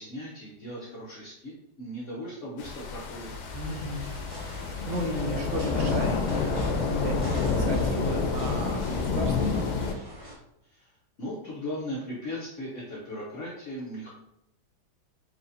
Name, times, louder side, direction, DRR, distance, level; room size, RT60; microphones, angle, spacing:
voice 1, 0.0-1.5 1.8-3.3 10.6-14.1, equal, 65° left, -6 dB, 0.7 m, -38 dB
sound 1, 2.6-9.9, left 4 dB, 85° left, 1.4 m, -29 dB
sound 2, 3.2-9.4, left 3 dB, 70° right, 2.2 m, -41 dB
voice 2, 3.5-4.1 4.8-9.9, equal, 90° right, 3 dB, 1.5 m, -34 dB
sound 3, 4.0-10.3, right 1 dB, 55° right, 0.3 m, -46 dB
4.6 x 2.7 x 2.6 m, 0.81 s
omnidirectional pair, 2.1 m